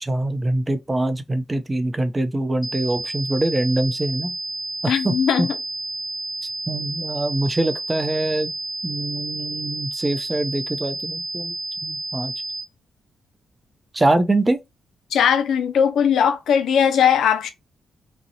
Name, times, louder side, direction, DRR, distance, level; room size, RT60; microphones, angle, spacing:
voice 1, 0.0-4.3 4.8-5.5 6.7-8.5 8.8-11.5 11.8-12.3 13.9-14.6, right 2 dB, 25° right, 0.5 m, -23 dB
sound 1, 2.6-12.6, right 2 dB, 15° left, 0.7 m, -31 dB
voice 2, 4.9-5.6 15.1-17.5, left 8 dB, 75° left, 0.4 m, -19 dB
2.5 x 2.0 x 2.7 m
supercardioid pair, 50°, 0 cm